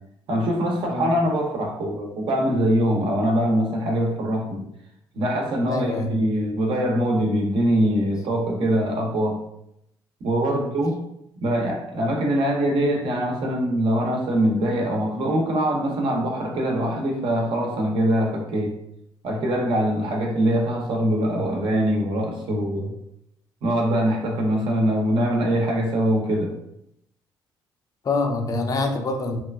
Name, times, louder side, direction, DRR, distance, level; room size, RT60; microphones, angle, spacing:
voice 1, 0.3-4.7 5.1-9.4 10.2-11.0 11.4-18.7 19.2-22.9 23.6-26.5, equal, 65° right, 1 dB, 0.7 m, -23 dB
voice 2, 5.7-6.2 10.5-10.6 28.0-29.4, left 3 dB, 40° left, 3 dB, 0.5 m, -25 dB
2.9 x 2.2 x 2.3 m, 0.79 s
supercardioid pair, 75°, 9 cm